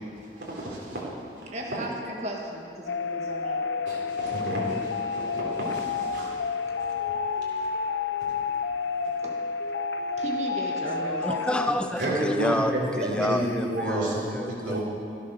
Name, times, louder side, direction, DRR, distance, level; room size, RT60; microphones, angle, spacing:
voice 1, 0.3-1.0 1.4-1.5 3.9-6.5 6.8-6.9 12.0-13.4 13.7-14.2 14.6-14.8, right 1 dB, 75° right, -5 dB, 3.8 m, -31 dB
voice 2, 1.5-3.6 9.2-9.4 10.2-11.6 13.0-13.1, equal, 40° right, -1 dB, 1.5 m, -35 dB
sound 1, 2.9-11.7, left 5 dB, 90° left, 0.7 m, -30 dB
voice 3, 11.0-14.8, left 1 dB, 5° left, 7 dB, 0.7 m, -29 dB
14.5 x 11.5 x 6.3 m, 2.6 s
head